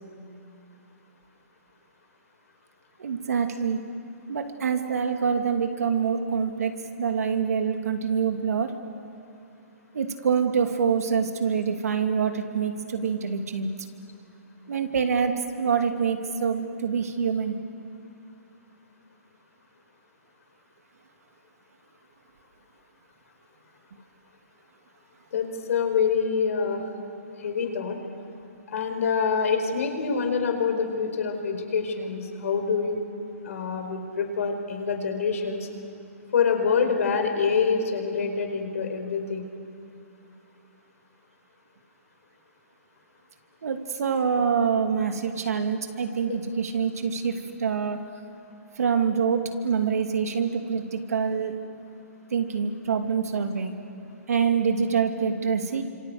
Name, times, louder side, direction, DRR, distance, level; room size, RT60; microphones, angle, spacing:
voice 1, 3.0-3.8 4.3-6.7 7.0-8.7 9.9-13.7 14.7-17.6 43.6-48.0 48.8-51.5 52.3-53.7 54.3-55.8, right 6 dB, 80° right, 5 dB, 2.7 m, -25 dB
voice 2, 25.3-26.8 27.4-28.0 28.7-33.0 33.4-35.7 36.3-39.5, left 5 dB, 65° left, 5 dB, 4.6 m, -26 dB
28.5 x 26.5 x 7.9 m, 2.7 s
hypercardioid pair, 155°, 8 cm